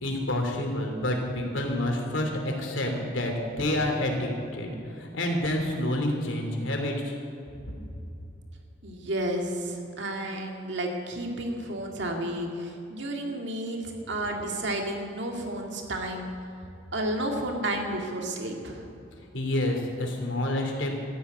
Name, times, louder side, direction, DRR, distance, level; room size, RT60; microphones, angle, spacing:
voice 1, 0.0-4.7 5.0-7.1 19.3-21.0, left 1 dB, 80° left, 2 dB, 2.9 m, -28 dB
voice 2, 8.8-16.3 16.9-18.9, right 1 dB, 65° right, 2 dB, 2.2 m, -31 dB
14.0 x 10.0 x 8.3 m, 2.7 s
head